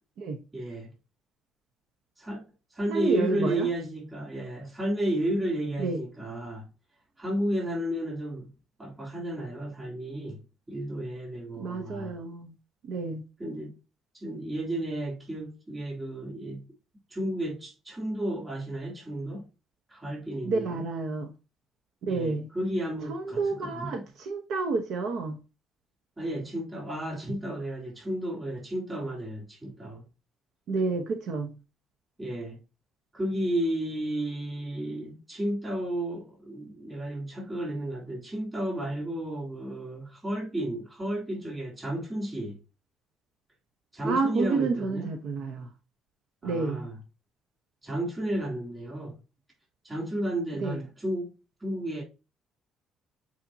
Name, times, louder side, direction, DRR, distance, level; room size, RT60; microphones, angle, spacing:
voice 1, 0.5-0.9 2.2-6.7 7.2-8.5 8.8-10.4 10.7-12.1 13.4-13.7 14.1-16.6 17.1-19.4 19.9-20.8 22.1-24.0 26.2-30.0 32.2-32.6 33.1-42.6 43.9-45.1 46.4-46.9 47.8-49.2 49.8-51.3 51.6-52.0, right 1 dB, 15° right, 3.4 m, -32 dB
voice 2, 2.9-3.7 5.8-6.0 11.6-12.5 12.8-13.2 20.4-21.3 22.0-22.5 23.1-25.4 30.7-31.5 44.0-45.7 46.4-46.9 50.6-50.8, right 4 dB, 70° right, 1.0 m, -30 dB
8.5 x 4.3 x 2.8 m
cardioid pair, 130°, 0 cm